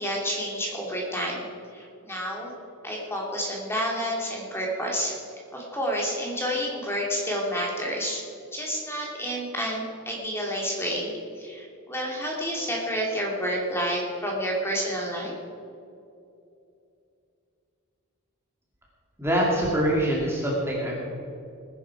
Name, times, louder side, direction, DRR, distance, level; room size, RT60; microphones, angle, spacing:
voice 1, 0.0-1.5 1.7-2.5 2.8-5.1 5.5-8.2 8.5-15.3, equal, 10° left, -2 dB, 2.7 m, -29 dB
voice 2, 19.2-20.9, right 1 dB, 10° right, -4 dB, 2.4 m, -24 dB
20.0 x 10.5 x 4.8 m, 2.6 s
head